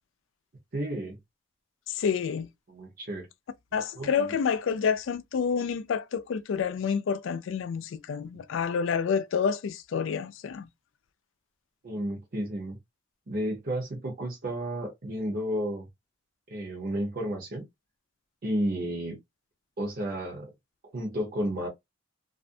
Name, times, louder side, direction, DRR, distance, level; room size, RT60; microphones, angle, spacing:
voice 1, 0.7-1.2 2.7-3.3 3.9-4.3 8.3-8.4 11.8-12.8 13.3-15.9 16.5-17.6 18.4-19.2 19.8-20.5 20.9-21.7, equal, 50° right, 0.8 m, -32 dB
voice 2, 1.9-2.5 3.7-10.7, left 6 dB, 75° left, 0.3 m, -28 dB
2.4 x 2.1 x 2.6 m
head